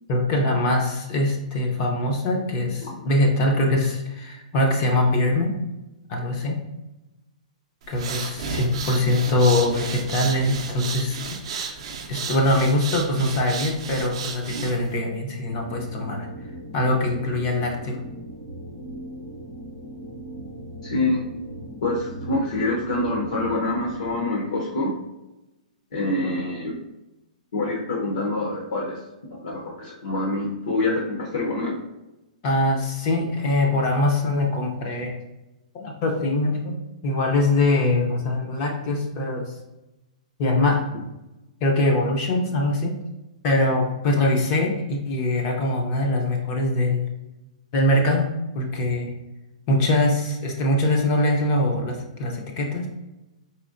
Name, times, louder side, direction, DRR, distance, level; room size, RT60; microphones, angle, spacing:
voice 1, 0.1-5.5 6.1-6.6 7.9-11.7 12.1-16.3 16.7-18.0 32.4-35.1 35.7-36.8 37.0-39.5 40.4-41.0 41.6-42.9 43.4-47.0 47.7-48.3 48.5-49.1 49.7-52.9, left 1 dB, 25° left, 1 dB, 0.5 m, -23 dB
sound 1, 7.8-15.0, right 5 dB, 45° right, 0.5 m, -33 dB
sound 2, 15.5-24.2, right 1 dB, 90° left, 1.2 m, -38 dB
voice 2, 20.8-21.2 21.8-25.0 25.9-26.8 27.5-29.0 29.3-31.8, left 2 dB, 65° left, -2 dB, 0.8 m, -26 dB
4.2 x 3.5 x 2.5 m, 0.99 s
hypercardioid pair, 175°, 4 cm